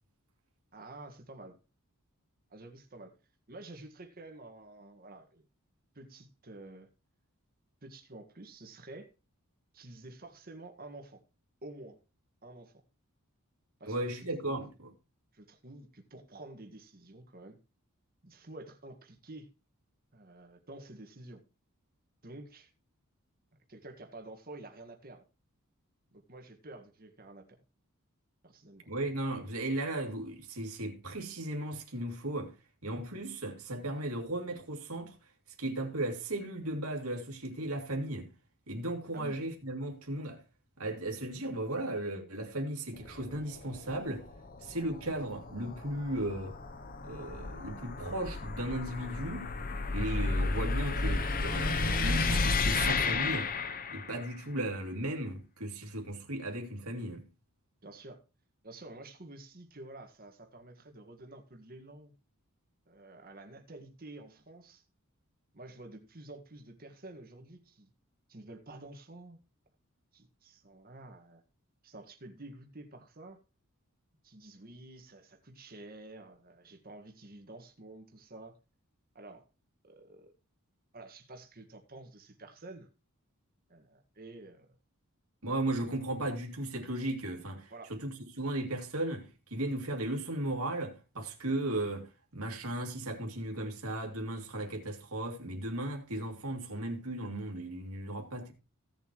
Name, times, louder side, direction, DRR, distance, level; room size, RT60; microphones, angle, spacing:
voice 1, 0.7-1.6 2.5-3.2 3.5-5.4 6.0-6.9 7.8-9.1 9.7-11.2 11.6-12.0 12.4-12.8 13.8-14.7 15.3-17.6 18.2-19.5 20.1-21.4 22.2-22.7 23.7-25.3 26.1-27.6 28.4-28.9 39.1-39.4 57.8-58.2 58.6-62.1 62.9-64.8 65.5-67.9 68.3-69.4 70.1-71.4 71.8-73.4 74.2-78.6 79.2-79.5 79.8-80.3 80.9-82.9 83.7-84.8 87.7-87.9, right 2 dB, 40° right, 1.7 m, -50 dB
voice 2, 13.9-14.9 28.9-32.5 32.8-35.1 35.6-38.3 38.7-40.4 40.8-44.3 44.6-46.6 47.0-49.5 49.9-53.5 53.9-57.2 85.4-98.5, right 1 dB, 80° right, 2.5 m, -36 dB
sound 1, 43.0-54.3, left 3 dB, 40° left, 0.8 m, -33 dB
16.0 x 7.4 x 3.1 m
head